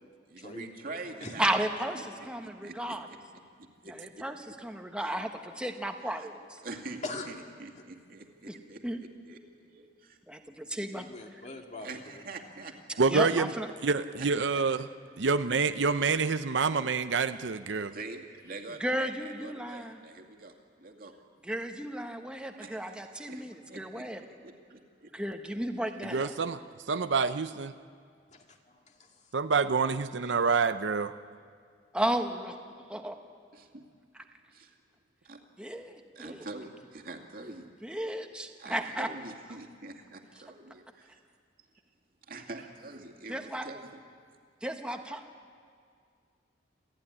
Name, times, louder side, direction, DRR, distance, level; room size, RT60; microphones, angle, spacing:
voice 1, 0.3-1.4 2.0-2.1 2.4-3.0 3.6-4.2 5.0-5.2 6.0-6.3 6.6-7.0 7.3-10.2 11.8-13.0 14.1-14.6 17.9-18.2 18.4-20.5 20.8-21.2 22.6-25.1 33.5-33.8 34.5-34.7 35.3-35.4 36.2-38.0 38.6-41.2 42.3-44.0, right 3 dB, 50° right, 3 dB, 2.3 m, -45 dB
voice 2, 1.4-3.1 3.9-6.6 8.4-8.5 8.8-9.0 10.3-11.1 13.0-13.7 18.8-20.0 21.4-24.2 25.1-26.3 31.9-33.2 35.6-36.4 37.8-39.1 43.3-43.7 44.6-45.3, right 1 dB, 5° right, 4 dB, 1.3 m, -34 dB
voice 3, 10.9-11.9 26.6-26.7 28.3-29.2, left 3 dB, 40° left, 2 dB, 2.1 m, -42 dB
voice 4, 13.0-13.5 13.8-14.9 15.2-17.9 26.1-26.6 26.9-27.7 29.3-31.1, right 4 dB, 75° right, 11 dB, 0.7 m, -27 dB
27.5 x 14.0 x 9.9 m, 2.1 s
head